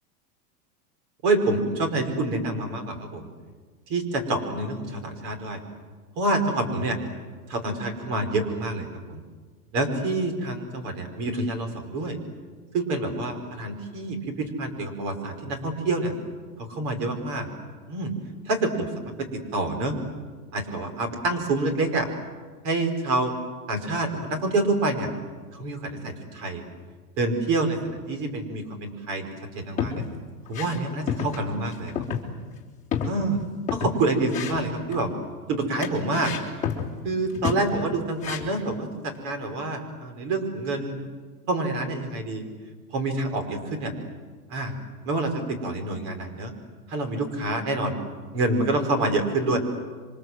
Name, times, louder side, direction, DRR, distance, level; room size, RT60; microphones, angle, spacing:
voice 1, 1.2-3.3 3.9-5.6 6.2-7.0 7.5-9.2 9.7-12.2 12.7-16.1 16.6-17.5 17.9-18.1 18.5-18.9 19.2-20.0 20.5-22.1 22.6-23.3 23.7-25.1 25.5-26.6 27.2-29.3 29.5-30.1 30.5-31.9 33.0-33.4 33.7-35.1 35.5-36.3 37.0-41.0 41.5-42.4 42.9-43.9 44.5-44.7 45.0-46.5 46.9-47.9 48.3-49.6, right 2 dB, 45° right, 6 dB, 5.3 m, -27 dB
sound 1, 29.6-30.1 30.5-30.8 31.1-31.4 31.7-32.2 32.5-32.6 32.9-34.0 34.3-35.1 35.8-36.9 37.3-37.7 38.2-38.6, left 7 dB, 15° left, 3.4 m, -30 dB
28.0 x 25.0 x 7.9 m, 1.4 s
supercardioid pair, 155°, 47 cm